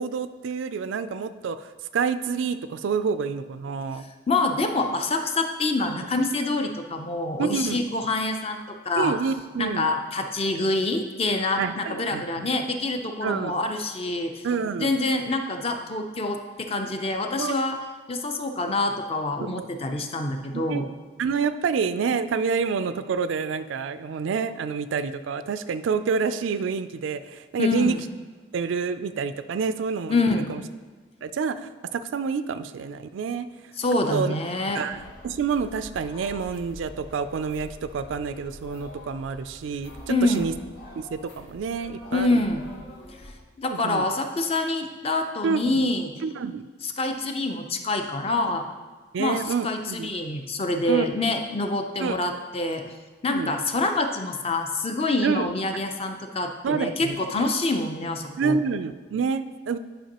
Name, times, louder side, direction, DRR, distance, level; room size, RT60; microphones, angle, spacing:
voice 1, 0.0-4.0 7.4-7.8 9.0-9.9 11.6-12.5 13.2-13.5 14.4-14.9 17.4-17.5 19.4-19.7 20.5-20.9 21.2-28.0 28.5-30.2 30.5-30.6 31.2-33.5 34.1-34.4 34.7-40.5 41.0-42.4 43.7-44.1 45.4-45.9 46.2-46.7 48.5-48.6 49.1-50.1 50.9-51.1 52.0-52.2 53.3-53.5 55.2-55.5 56.6-57.5 58.4-59.8, right 5 dB, 90° right, 12 dB, 0.4 m, -28 dB
voice 2, 4.3-9.1 9.6-14.4 14.8-17.8 18.1-20.9 27.6-28.0 30.1-30.5 33.8-34.8 40.1-40.5 42.1-42.6 43.6-46.1 46.8-48.7 49.2-52.9 53.2-58.6, left 2 dB, 30° left, 5 dB, 0.5 m, -26 dB
sound 1, 34.9-43.3, equal, 70° left, 1.6 m, -45 dB
10.0 x 5.2 x 2.9 m, 1.4 s
head